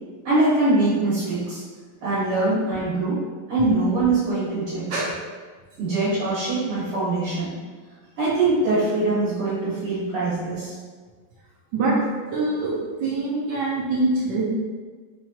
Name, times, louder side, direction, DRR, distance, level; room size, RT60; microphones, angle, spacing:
voice 1, 0.2-1.6 2.0-3.2 3.5-4.9 5.8-7.5 8.2-10.7, right 2 dB, 80° right, -11 dB, 2.3 m, -23 dB
voice 2, 12.3-12.7 13.0-14.4, right 2 dB, 65° right, -5 dB, 1.3 m, -24 dB
4.4 x 2.7 x 2.8 m, 1.5 s
omnidirectional pair, 2.3 m